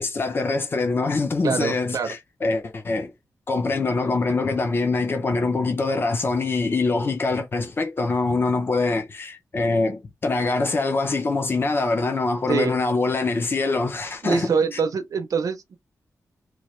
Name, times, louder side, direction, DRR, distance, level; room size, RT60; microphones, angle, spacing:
voice 1, 0.0-3.1 3.5-14.8, left 3 dB, 35° left, 0.6 m, -24 dB
voice 2, 1.4-2.1 12.5-12.8 14.2-15.8, right 5 dB, 60° right, 0.5 m, -24 dB
3.1 x 2.4 x 3.0 m
wide cardioid pair, 160°, 7 cm